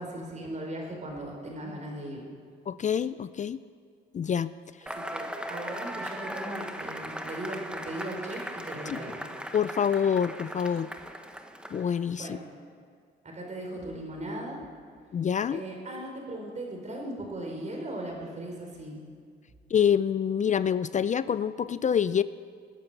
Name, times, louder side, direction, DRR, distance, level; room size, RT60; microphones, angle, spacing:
voice 1, 0.0-2.2 4.9-9.3 12.1-12.5 13.2-14.7 15.5-19.0, right 1 dB, 35° right, 1 dB, 4.3 m, -38 dB
voice 2, 2.7-3.6 4.1-4.5 8.9-9.0 9.5-10.9 11.7-12.4 15.1-15.6 19.7-22.2, left 8 dB, 40° left, 15 dB, 0.4 m, -26 dB
Cheering / Applause / Crowd, 4.9-12.1, right 1 dB, 5° right, 1.2 m, -38 dB
19.5 x 10.5 x 6.7 m, 2.1 s
cardioid pair, 90°, 20 cm